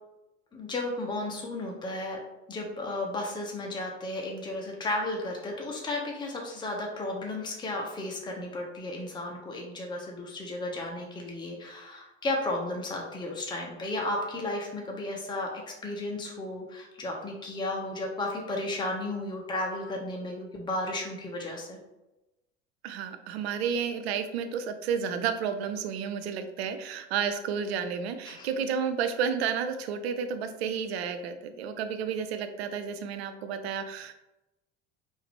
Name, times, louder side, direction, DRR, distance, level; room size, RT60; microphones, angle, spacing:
voice 1, 0.5-2.2 2.5-15.5 15.8-21.8 28.3-28.5, left 2 dB, 15° left, 0 dB, 0.8 m, -34 dB
voice 2, 22.8-34.1, right 7 dB, 65° right, 9 dB, 0.5 m, -31 dB
4.7 x 2.7 x 3.4 m, 0.98 s
figure-of-eight pair, 65°, 34 cm